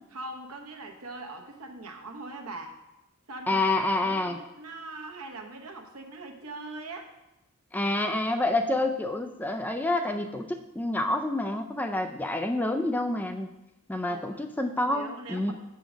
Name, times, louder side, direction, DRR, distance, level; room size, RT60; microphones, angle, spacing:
voice 1, 0.1-2.8 3.3-3.6 4.0-7.1 14.1-14.4 14.9-15.5, right 2 dB, 80° right, 3 dB, 1.0 m, -41 dB
voice 2, 3.5-4.4 7.7-13.5 13.9-15.5, left 2 dB, 10° left, 5 dB, 0.3 m, -28 dB
7.1 x 3.8 x 6.1 m, 0.94 s
head